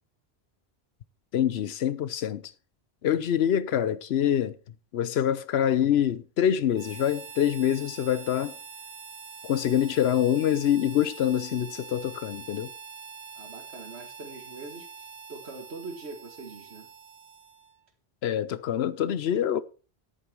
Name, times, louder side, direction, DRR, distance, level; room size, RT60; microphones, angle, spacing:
voice 1, 1.3-2.4 3.0-4.6 4.9-8.6 9.4-12.7 18.2-19.6, left 10 dB, 75° left, 1.0 m, -25 dB
Harmonica, 6.7-17.8, right 6 dB, 65° right, 1.3 m, -45 dB
voice 2, 13.3-16.9, right 3 dB, 85° right, 2.1 m, -43 dB
10.0 x 8.9 x 4.5 m
omnidirectional pair, 1.1 m